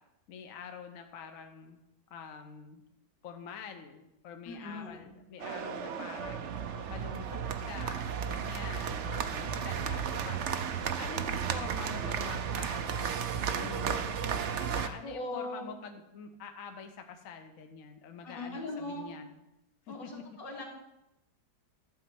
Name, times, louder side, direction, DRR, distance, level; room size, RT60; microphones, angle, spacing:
voice 1, 0.3-1.8 2.1-2.8 3.2-6.5 6.9-7.4 7.6-10.6 11.0-14.3 14.6-19.3 19.9-20.2, left 6 dB, 55° left, 5 dB, 1.1 m, -46 dB
voice 2, 4.5-5.1 15.0-15.7 18.2-19.1 19.9-20.6, left 2 dB, 85° left, -1 dB, 2.8 m, -40 dB
sound 1, 5.4-14.9, right 7 dB, 65° right, 0.7 m, -34 dB
12.5 x 4.3 x 7.8 m, 0.89 s
omnidirectional pair, 1.9 m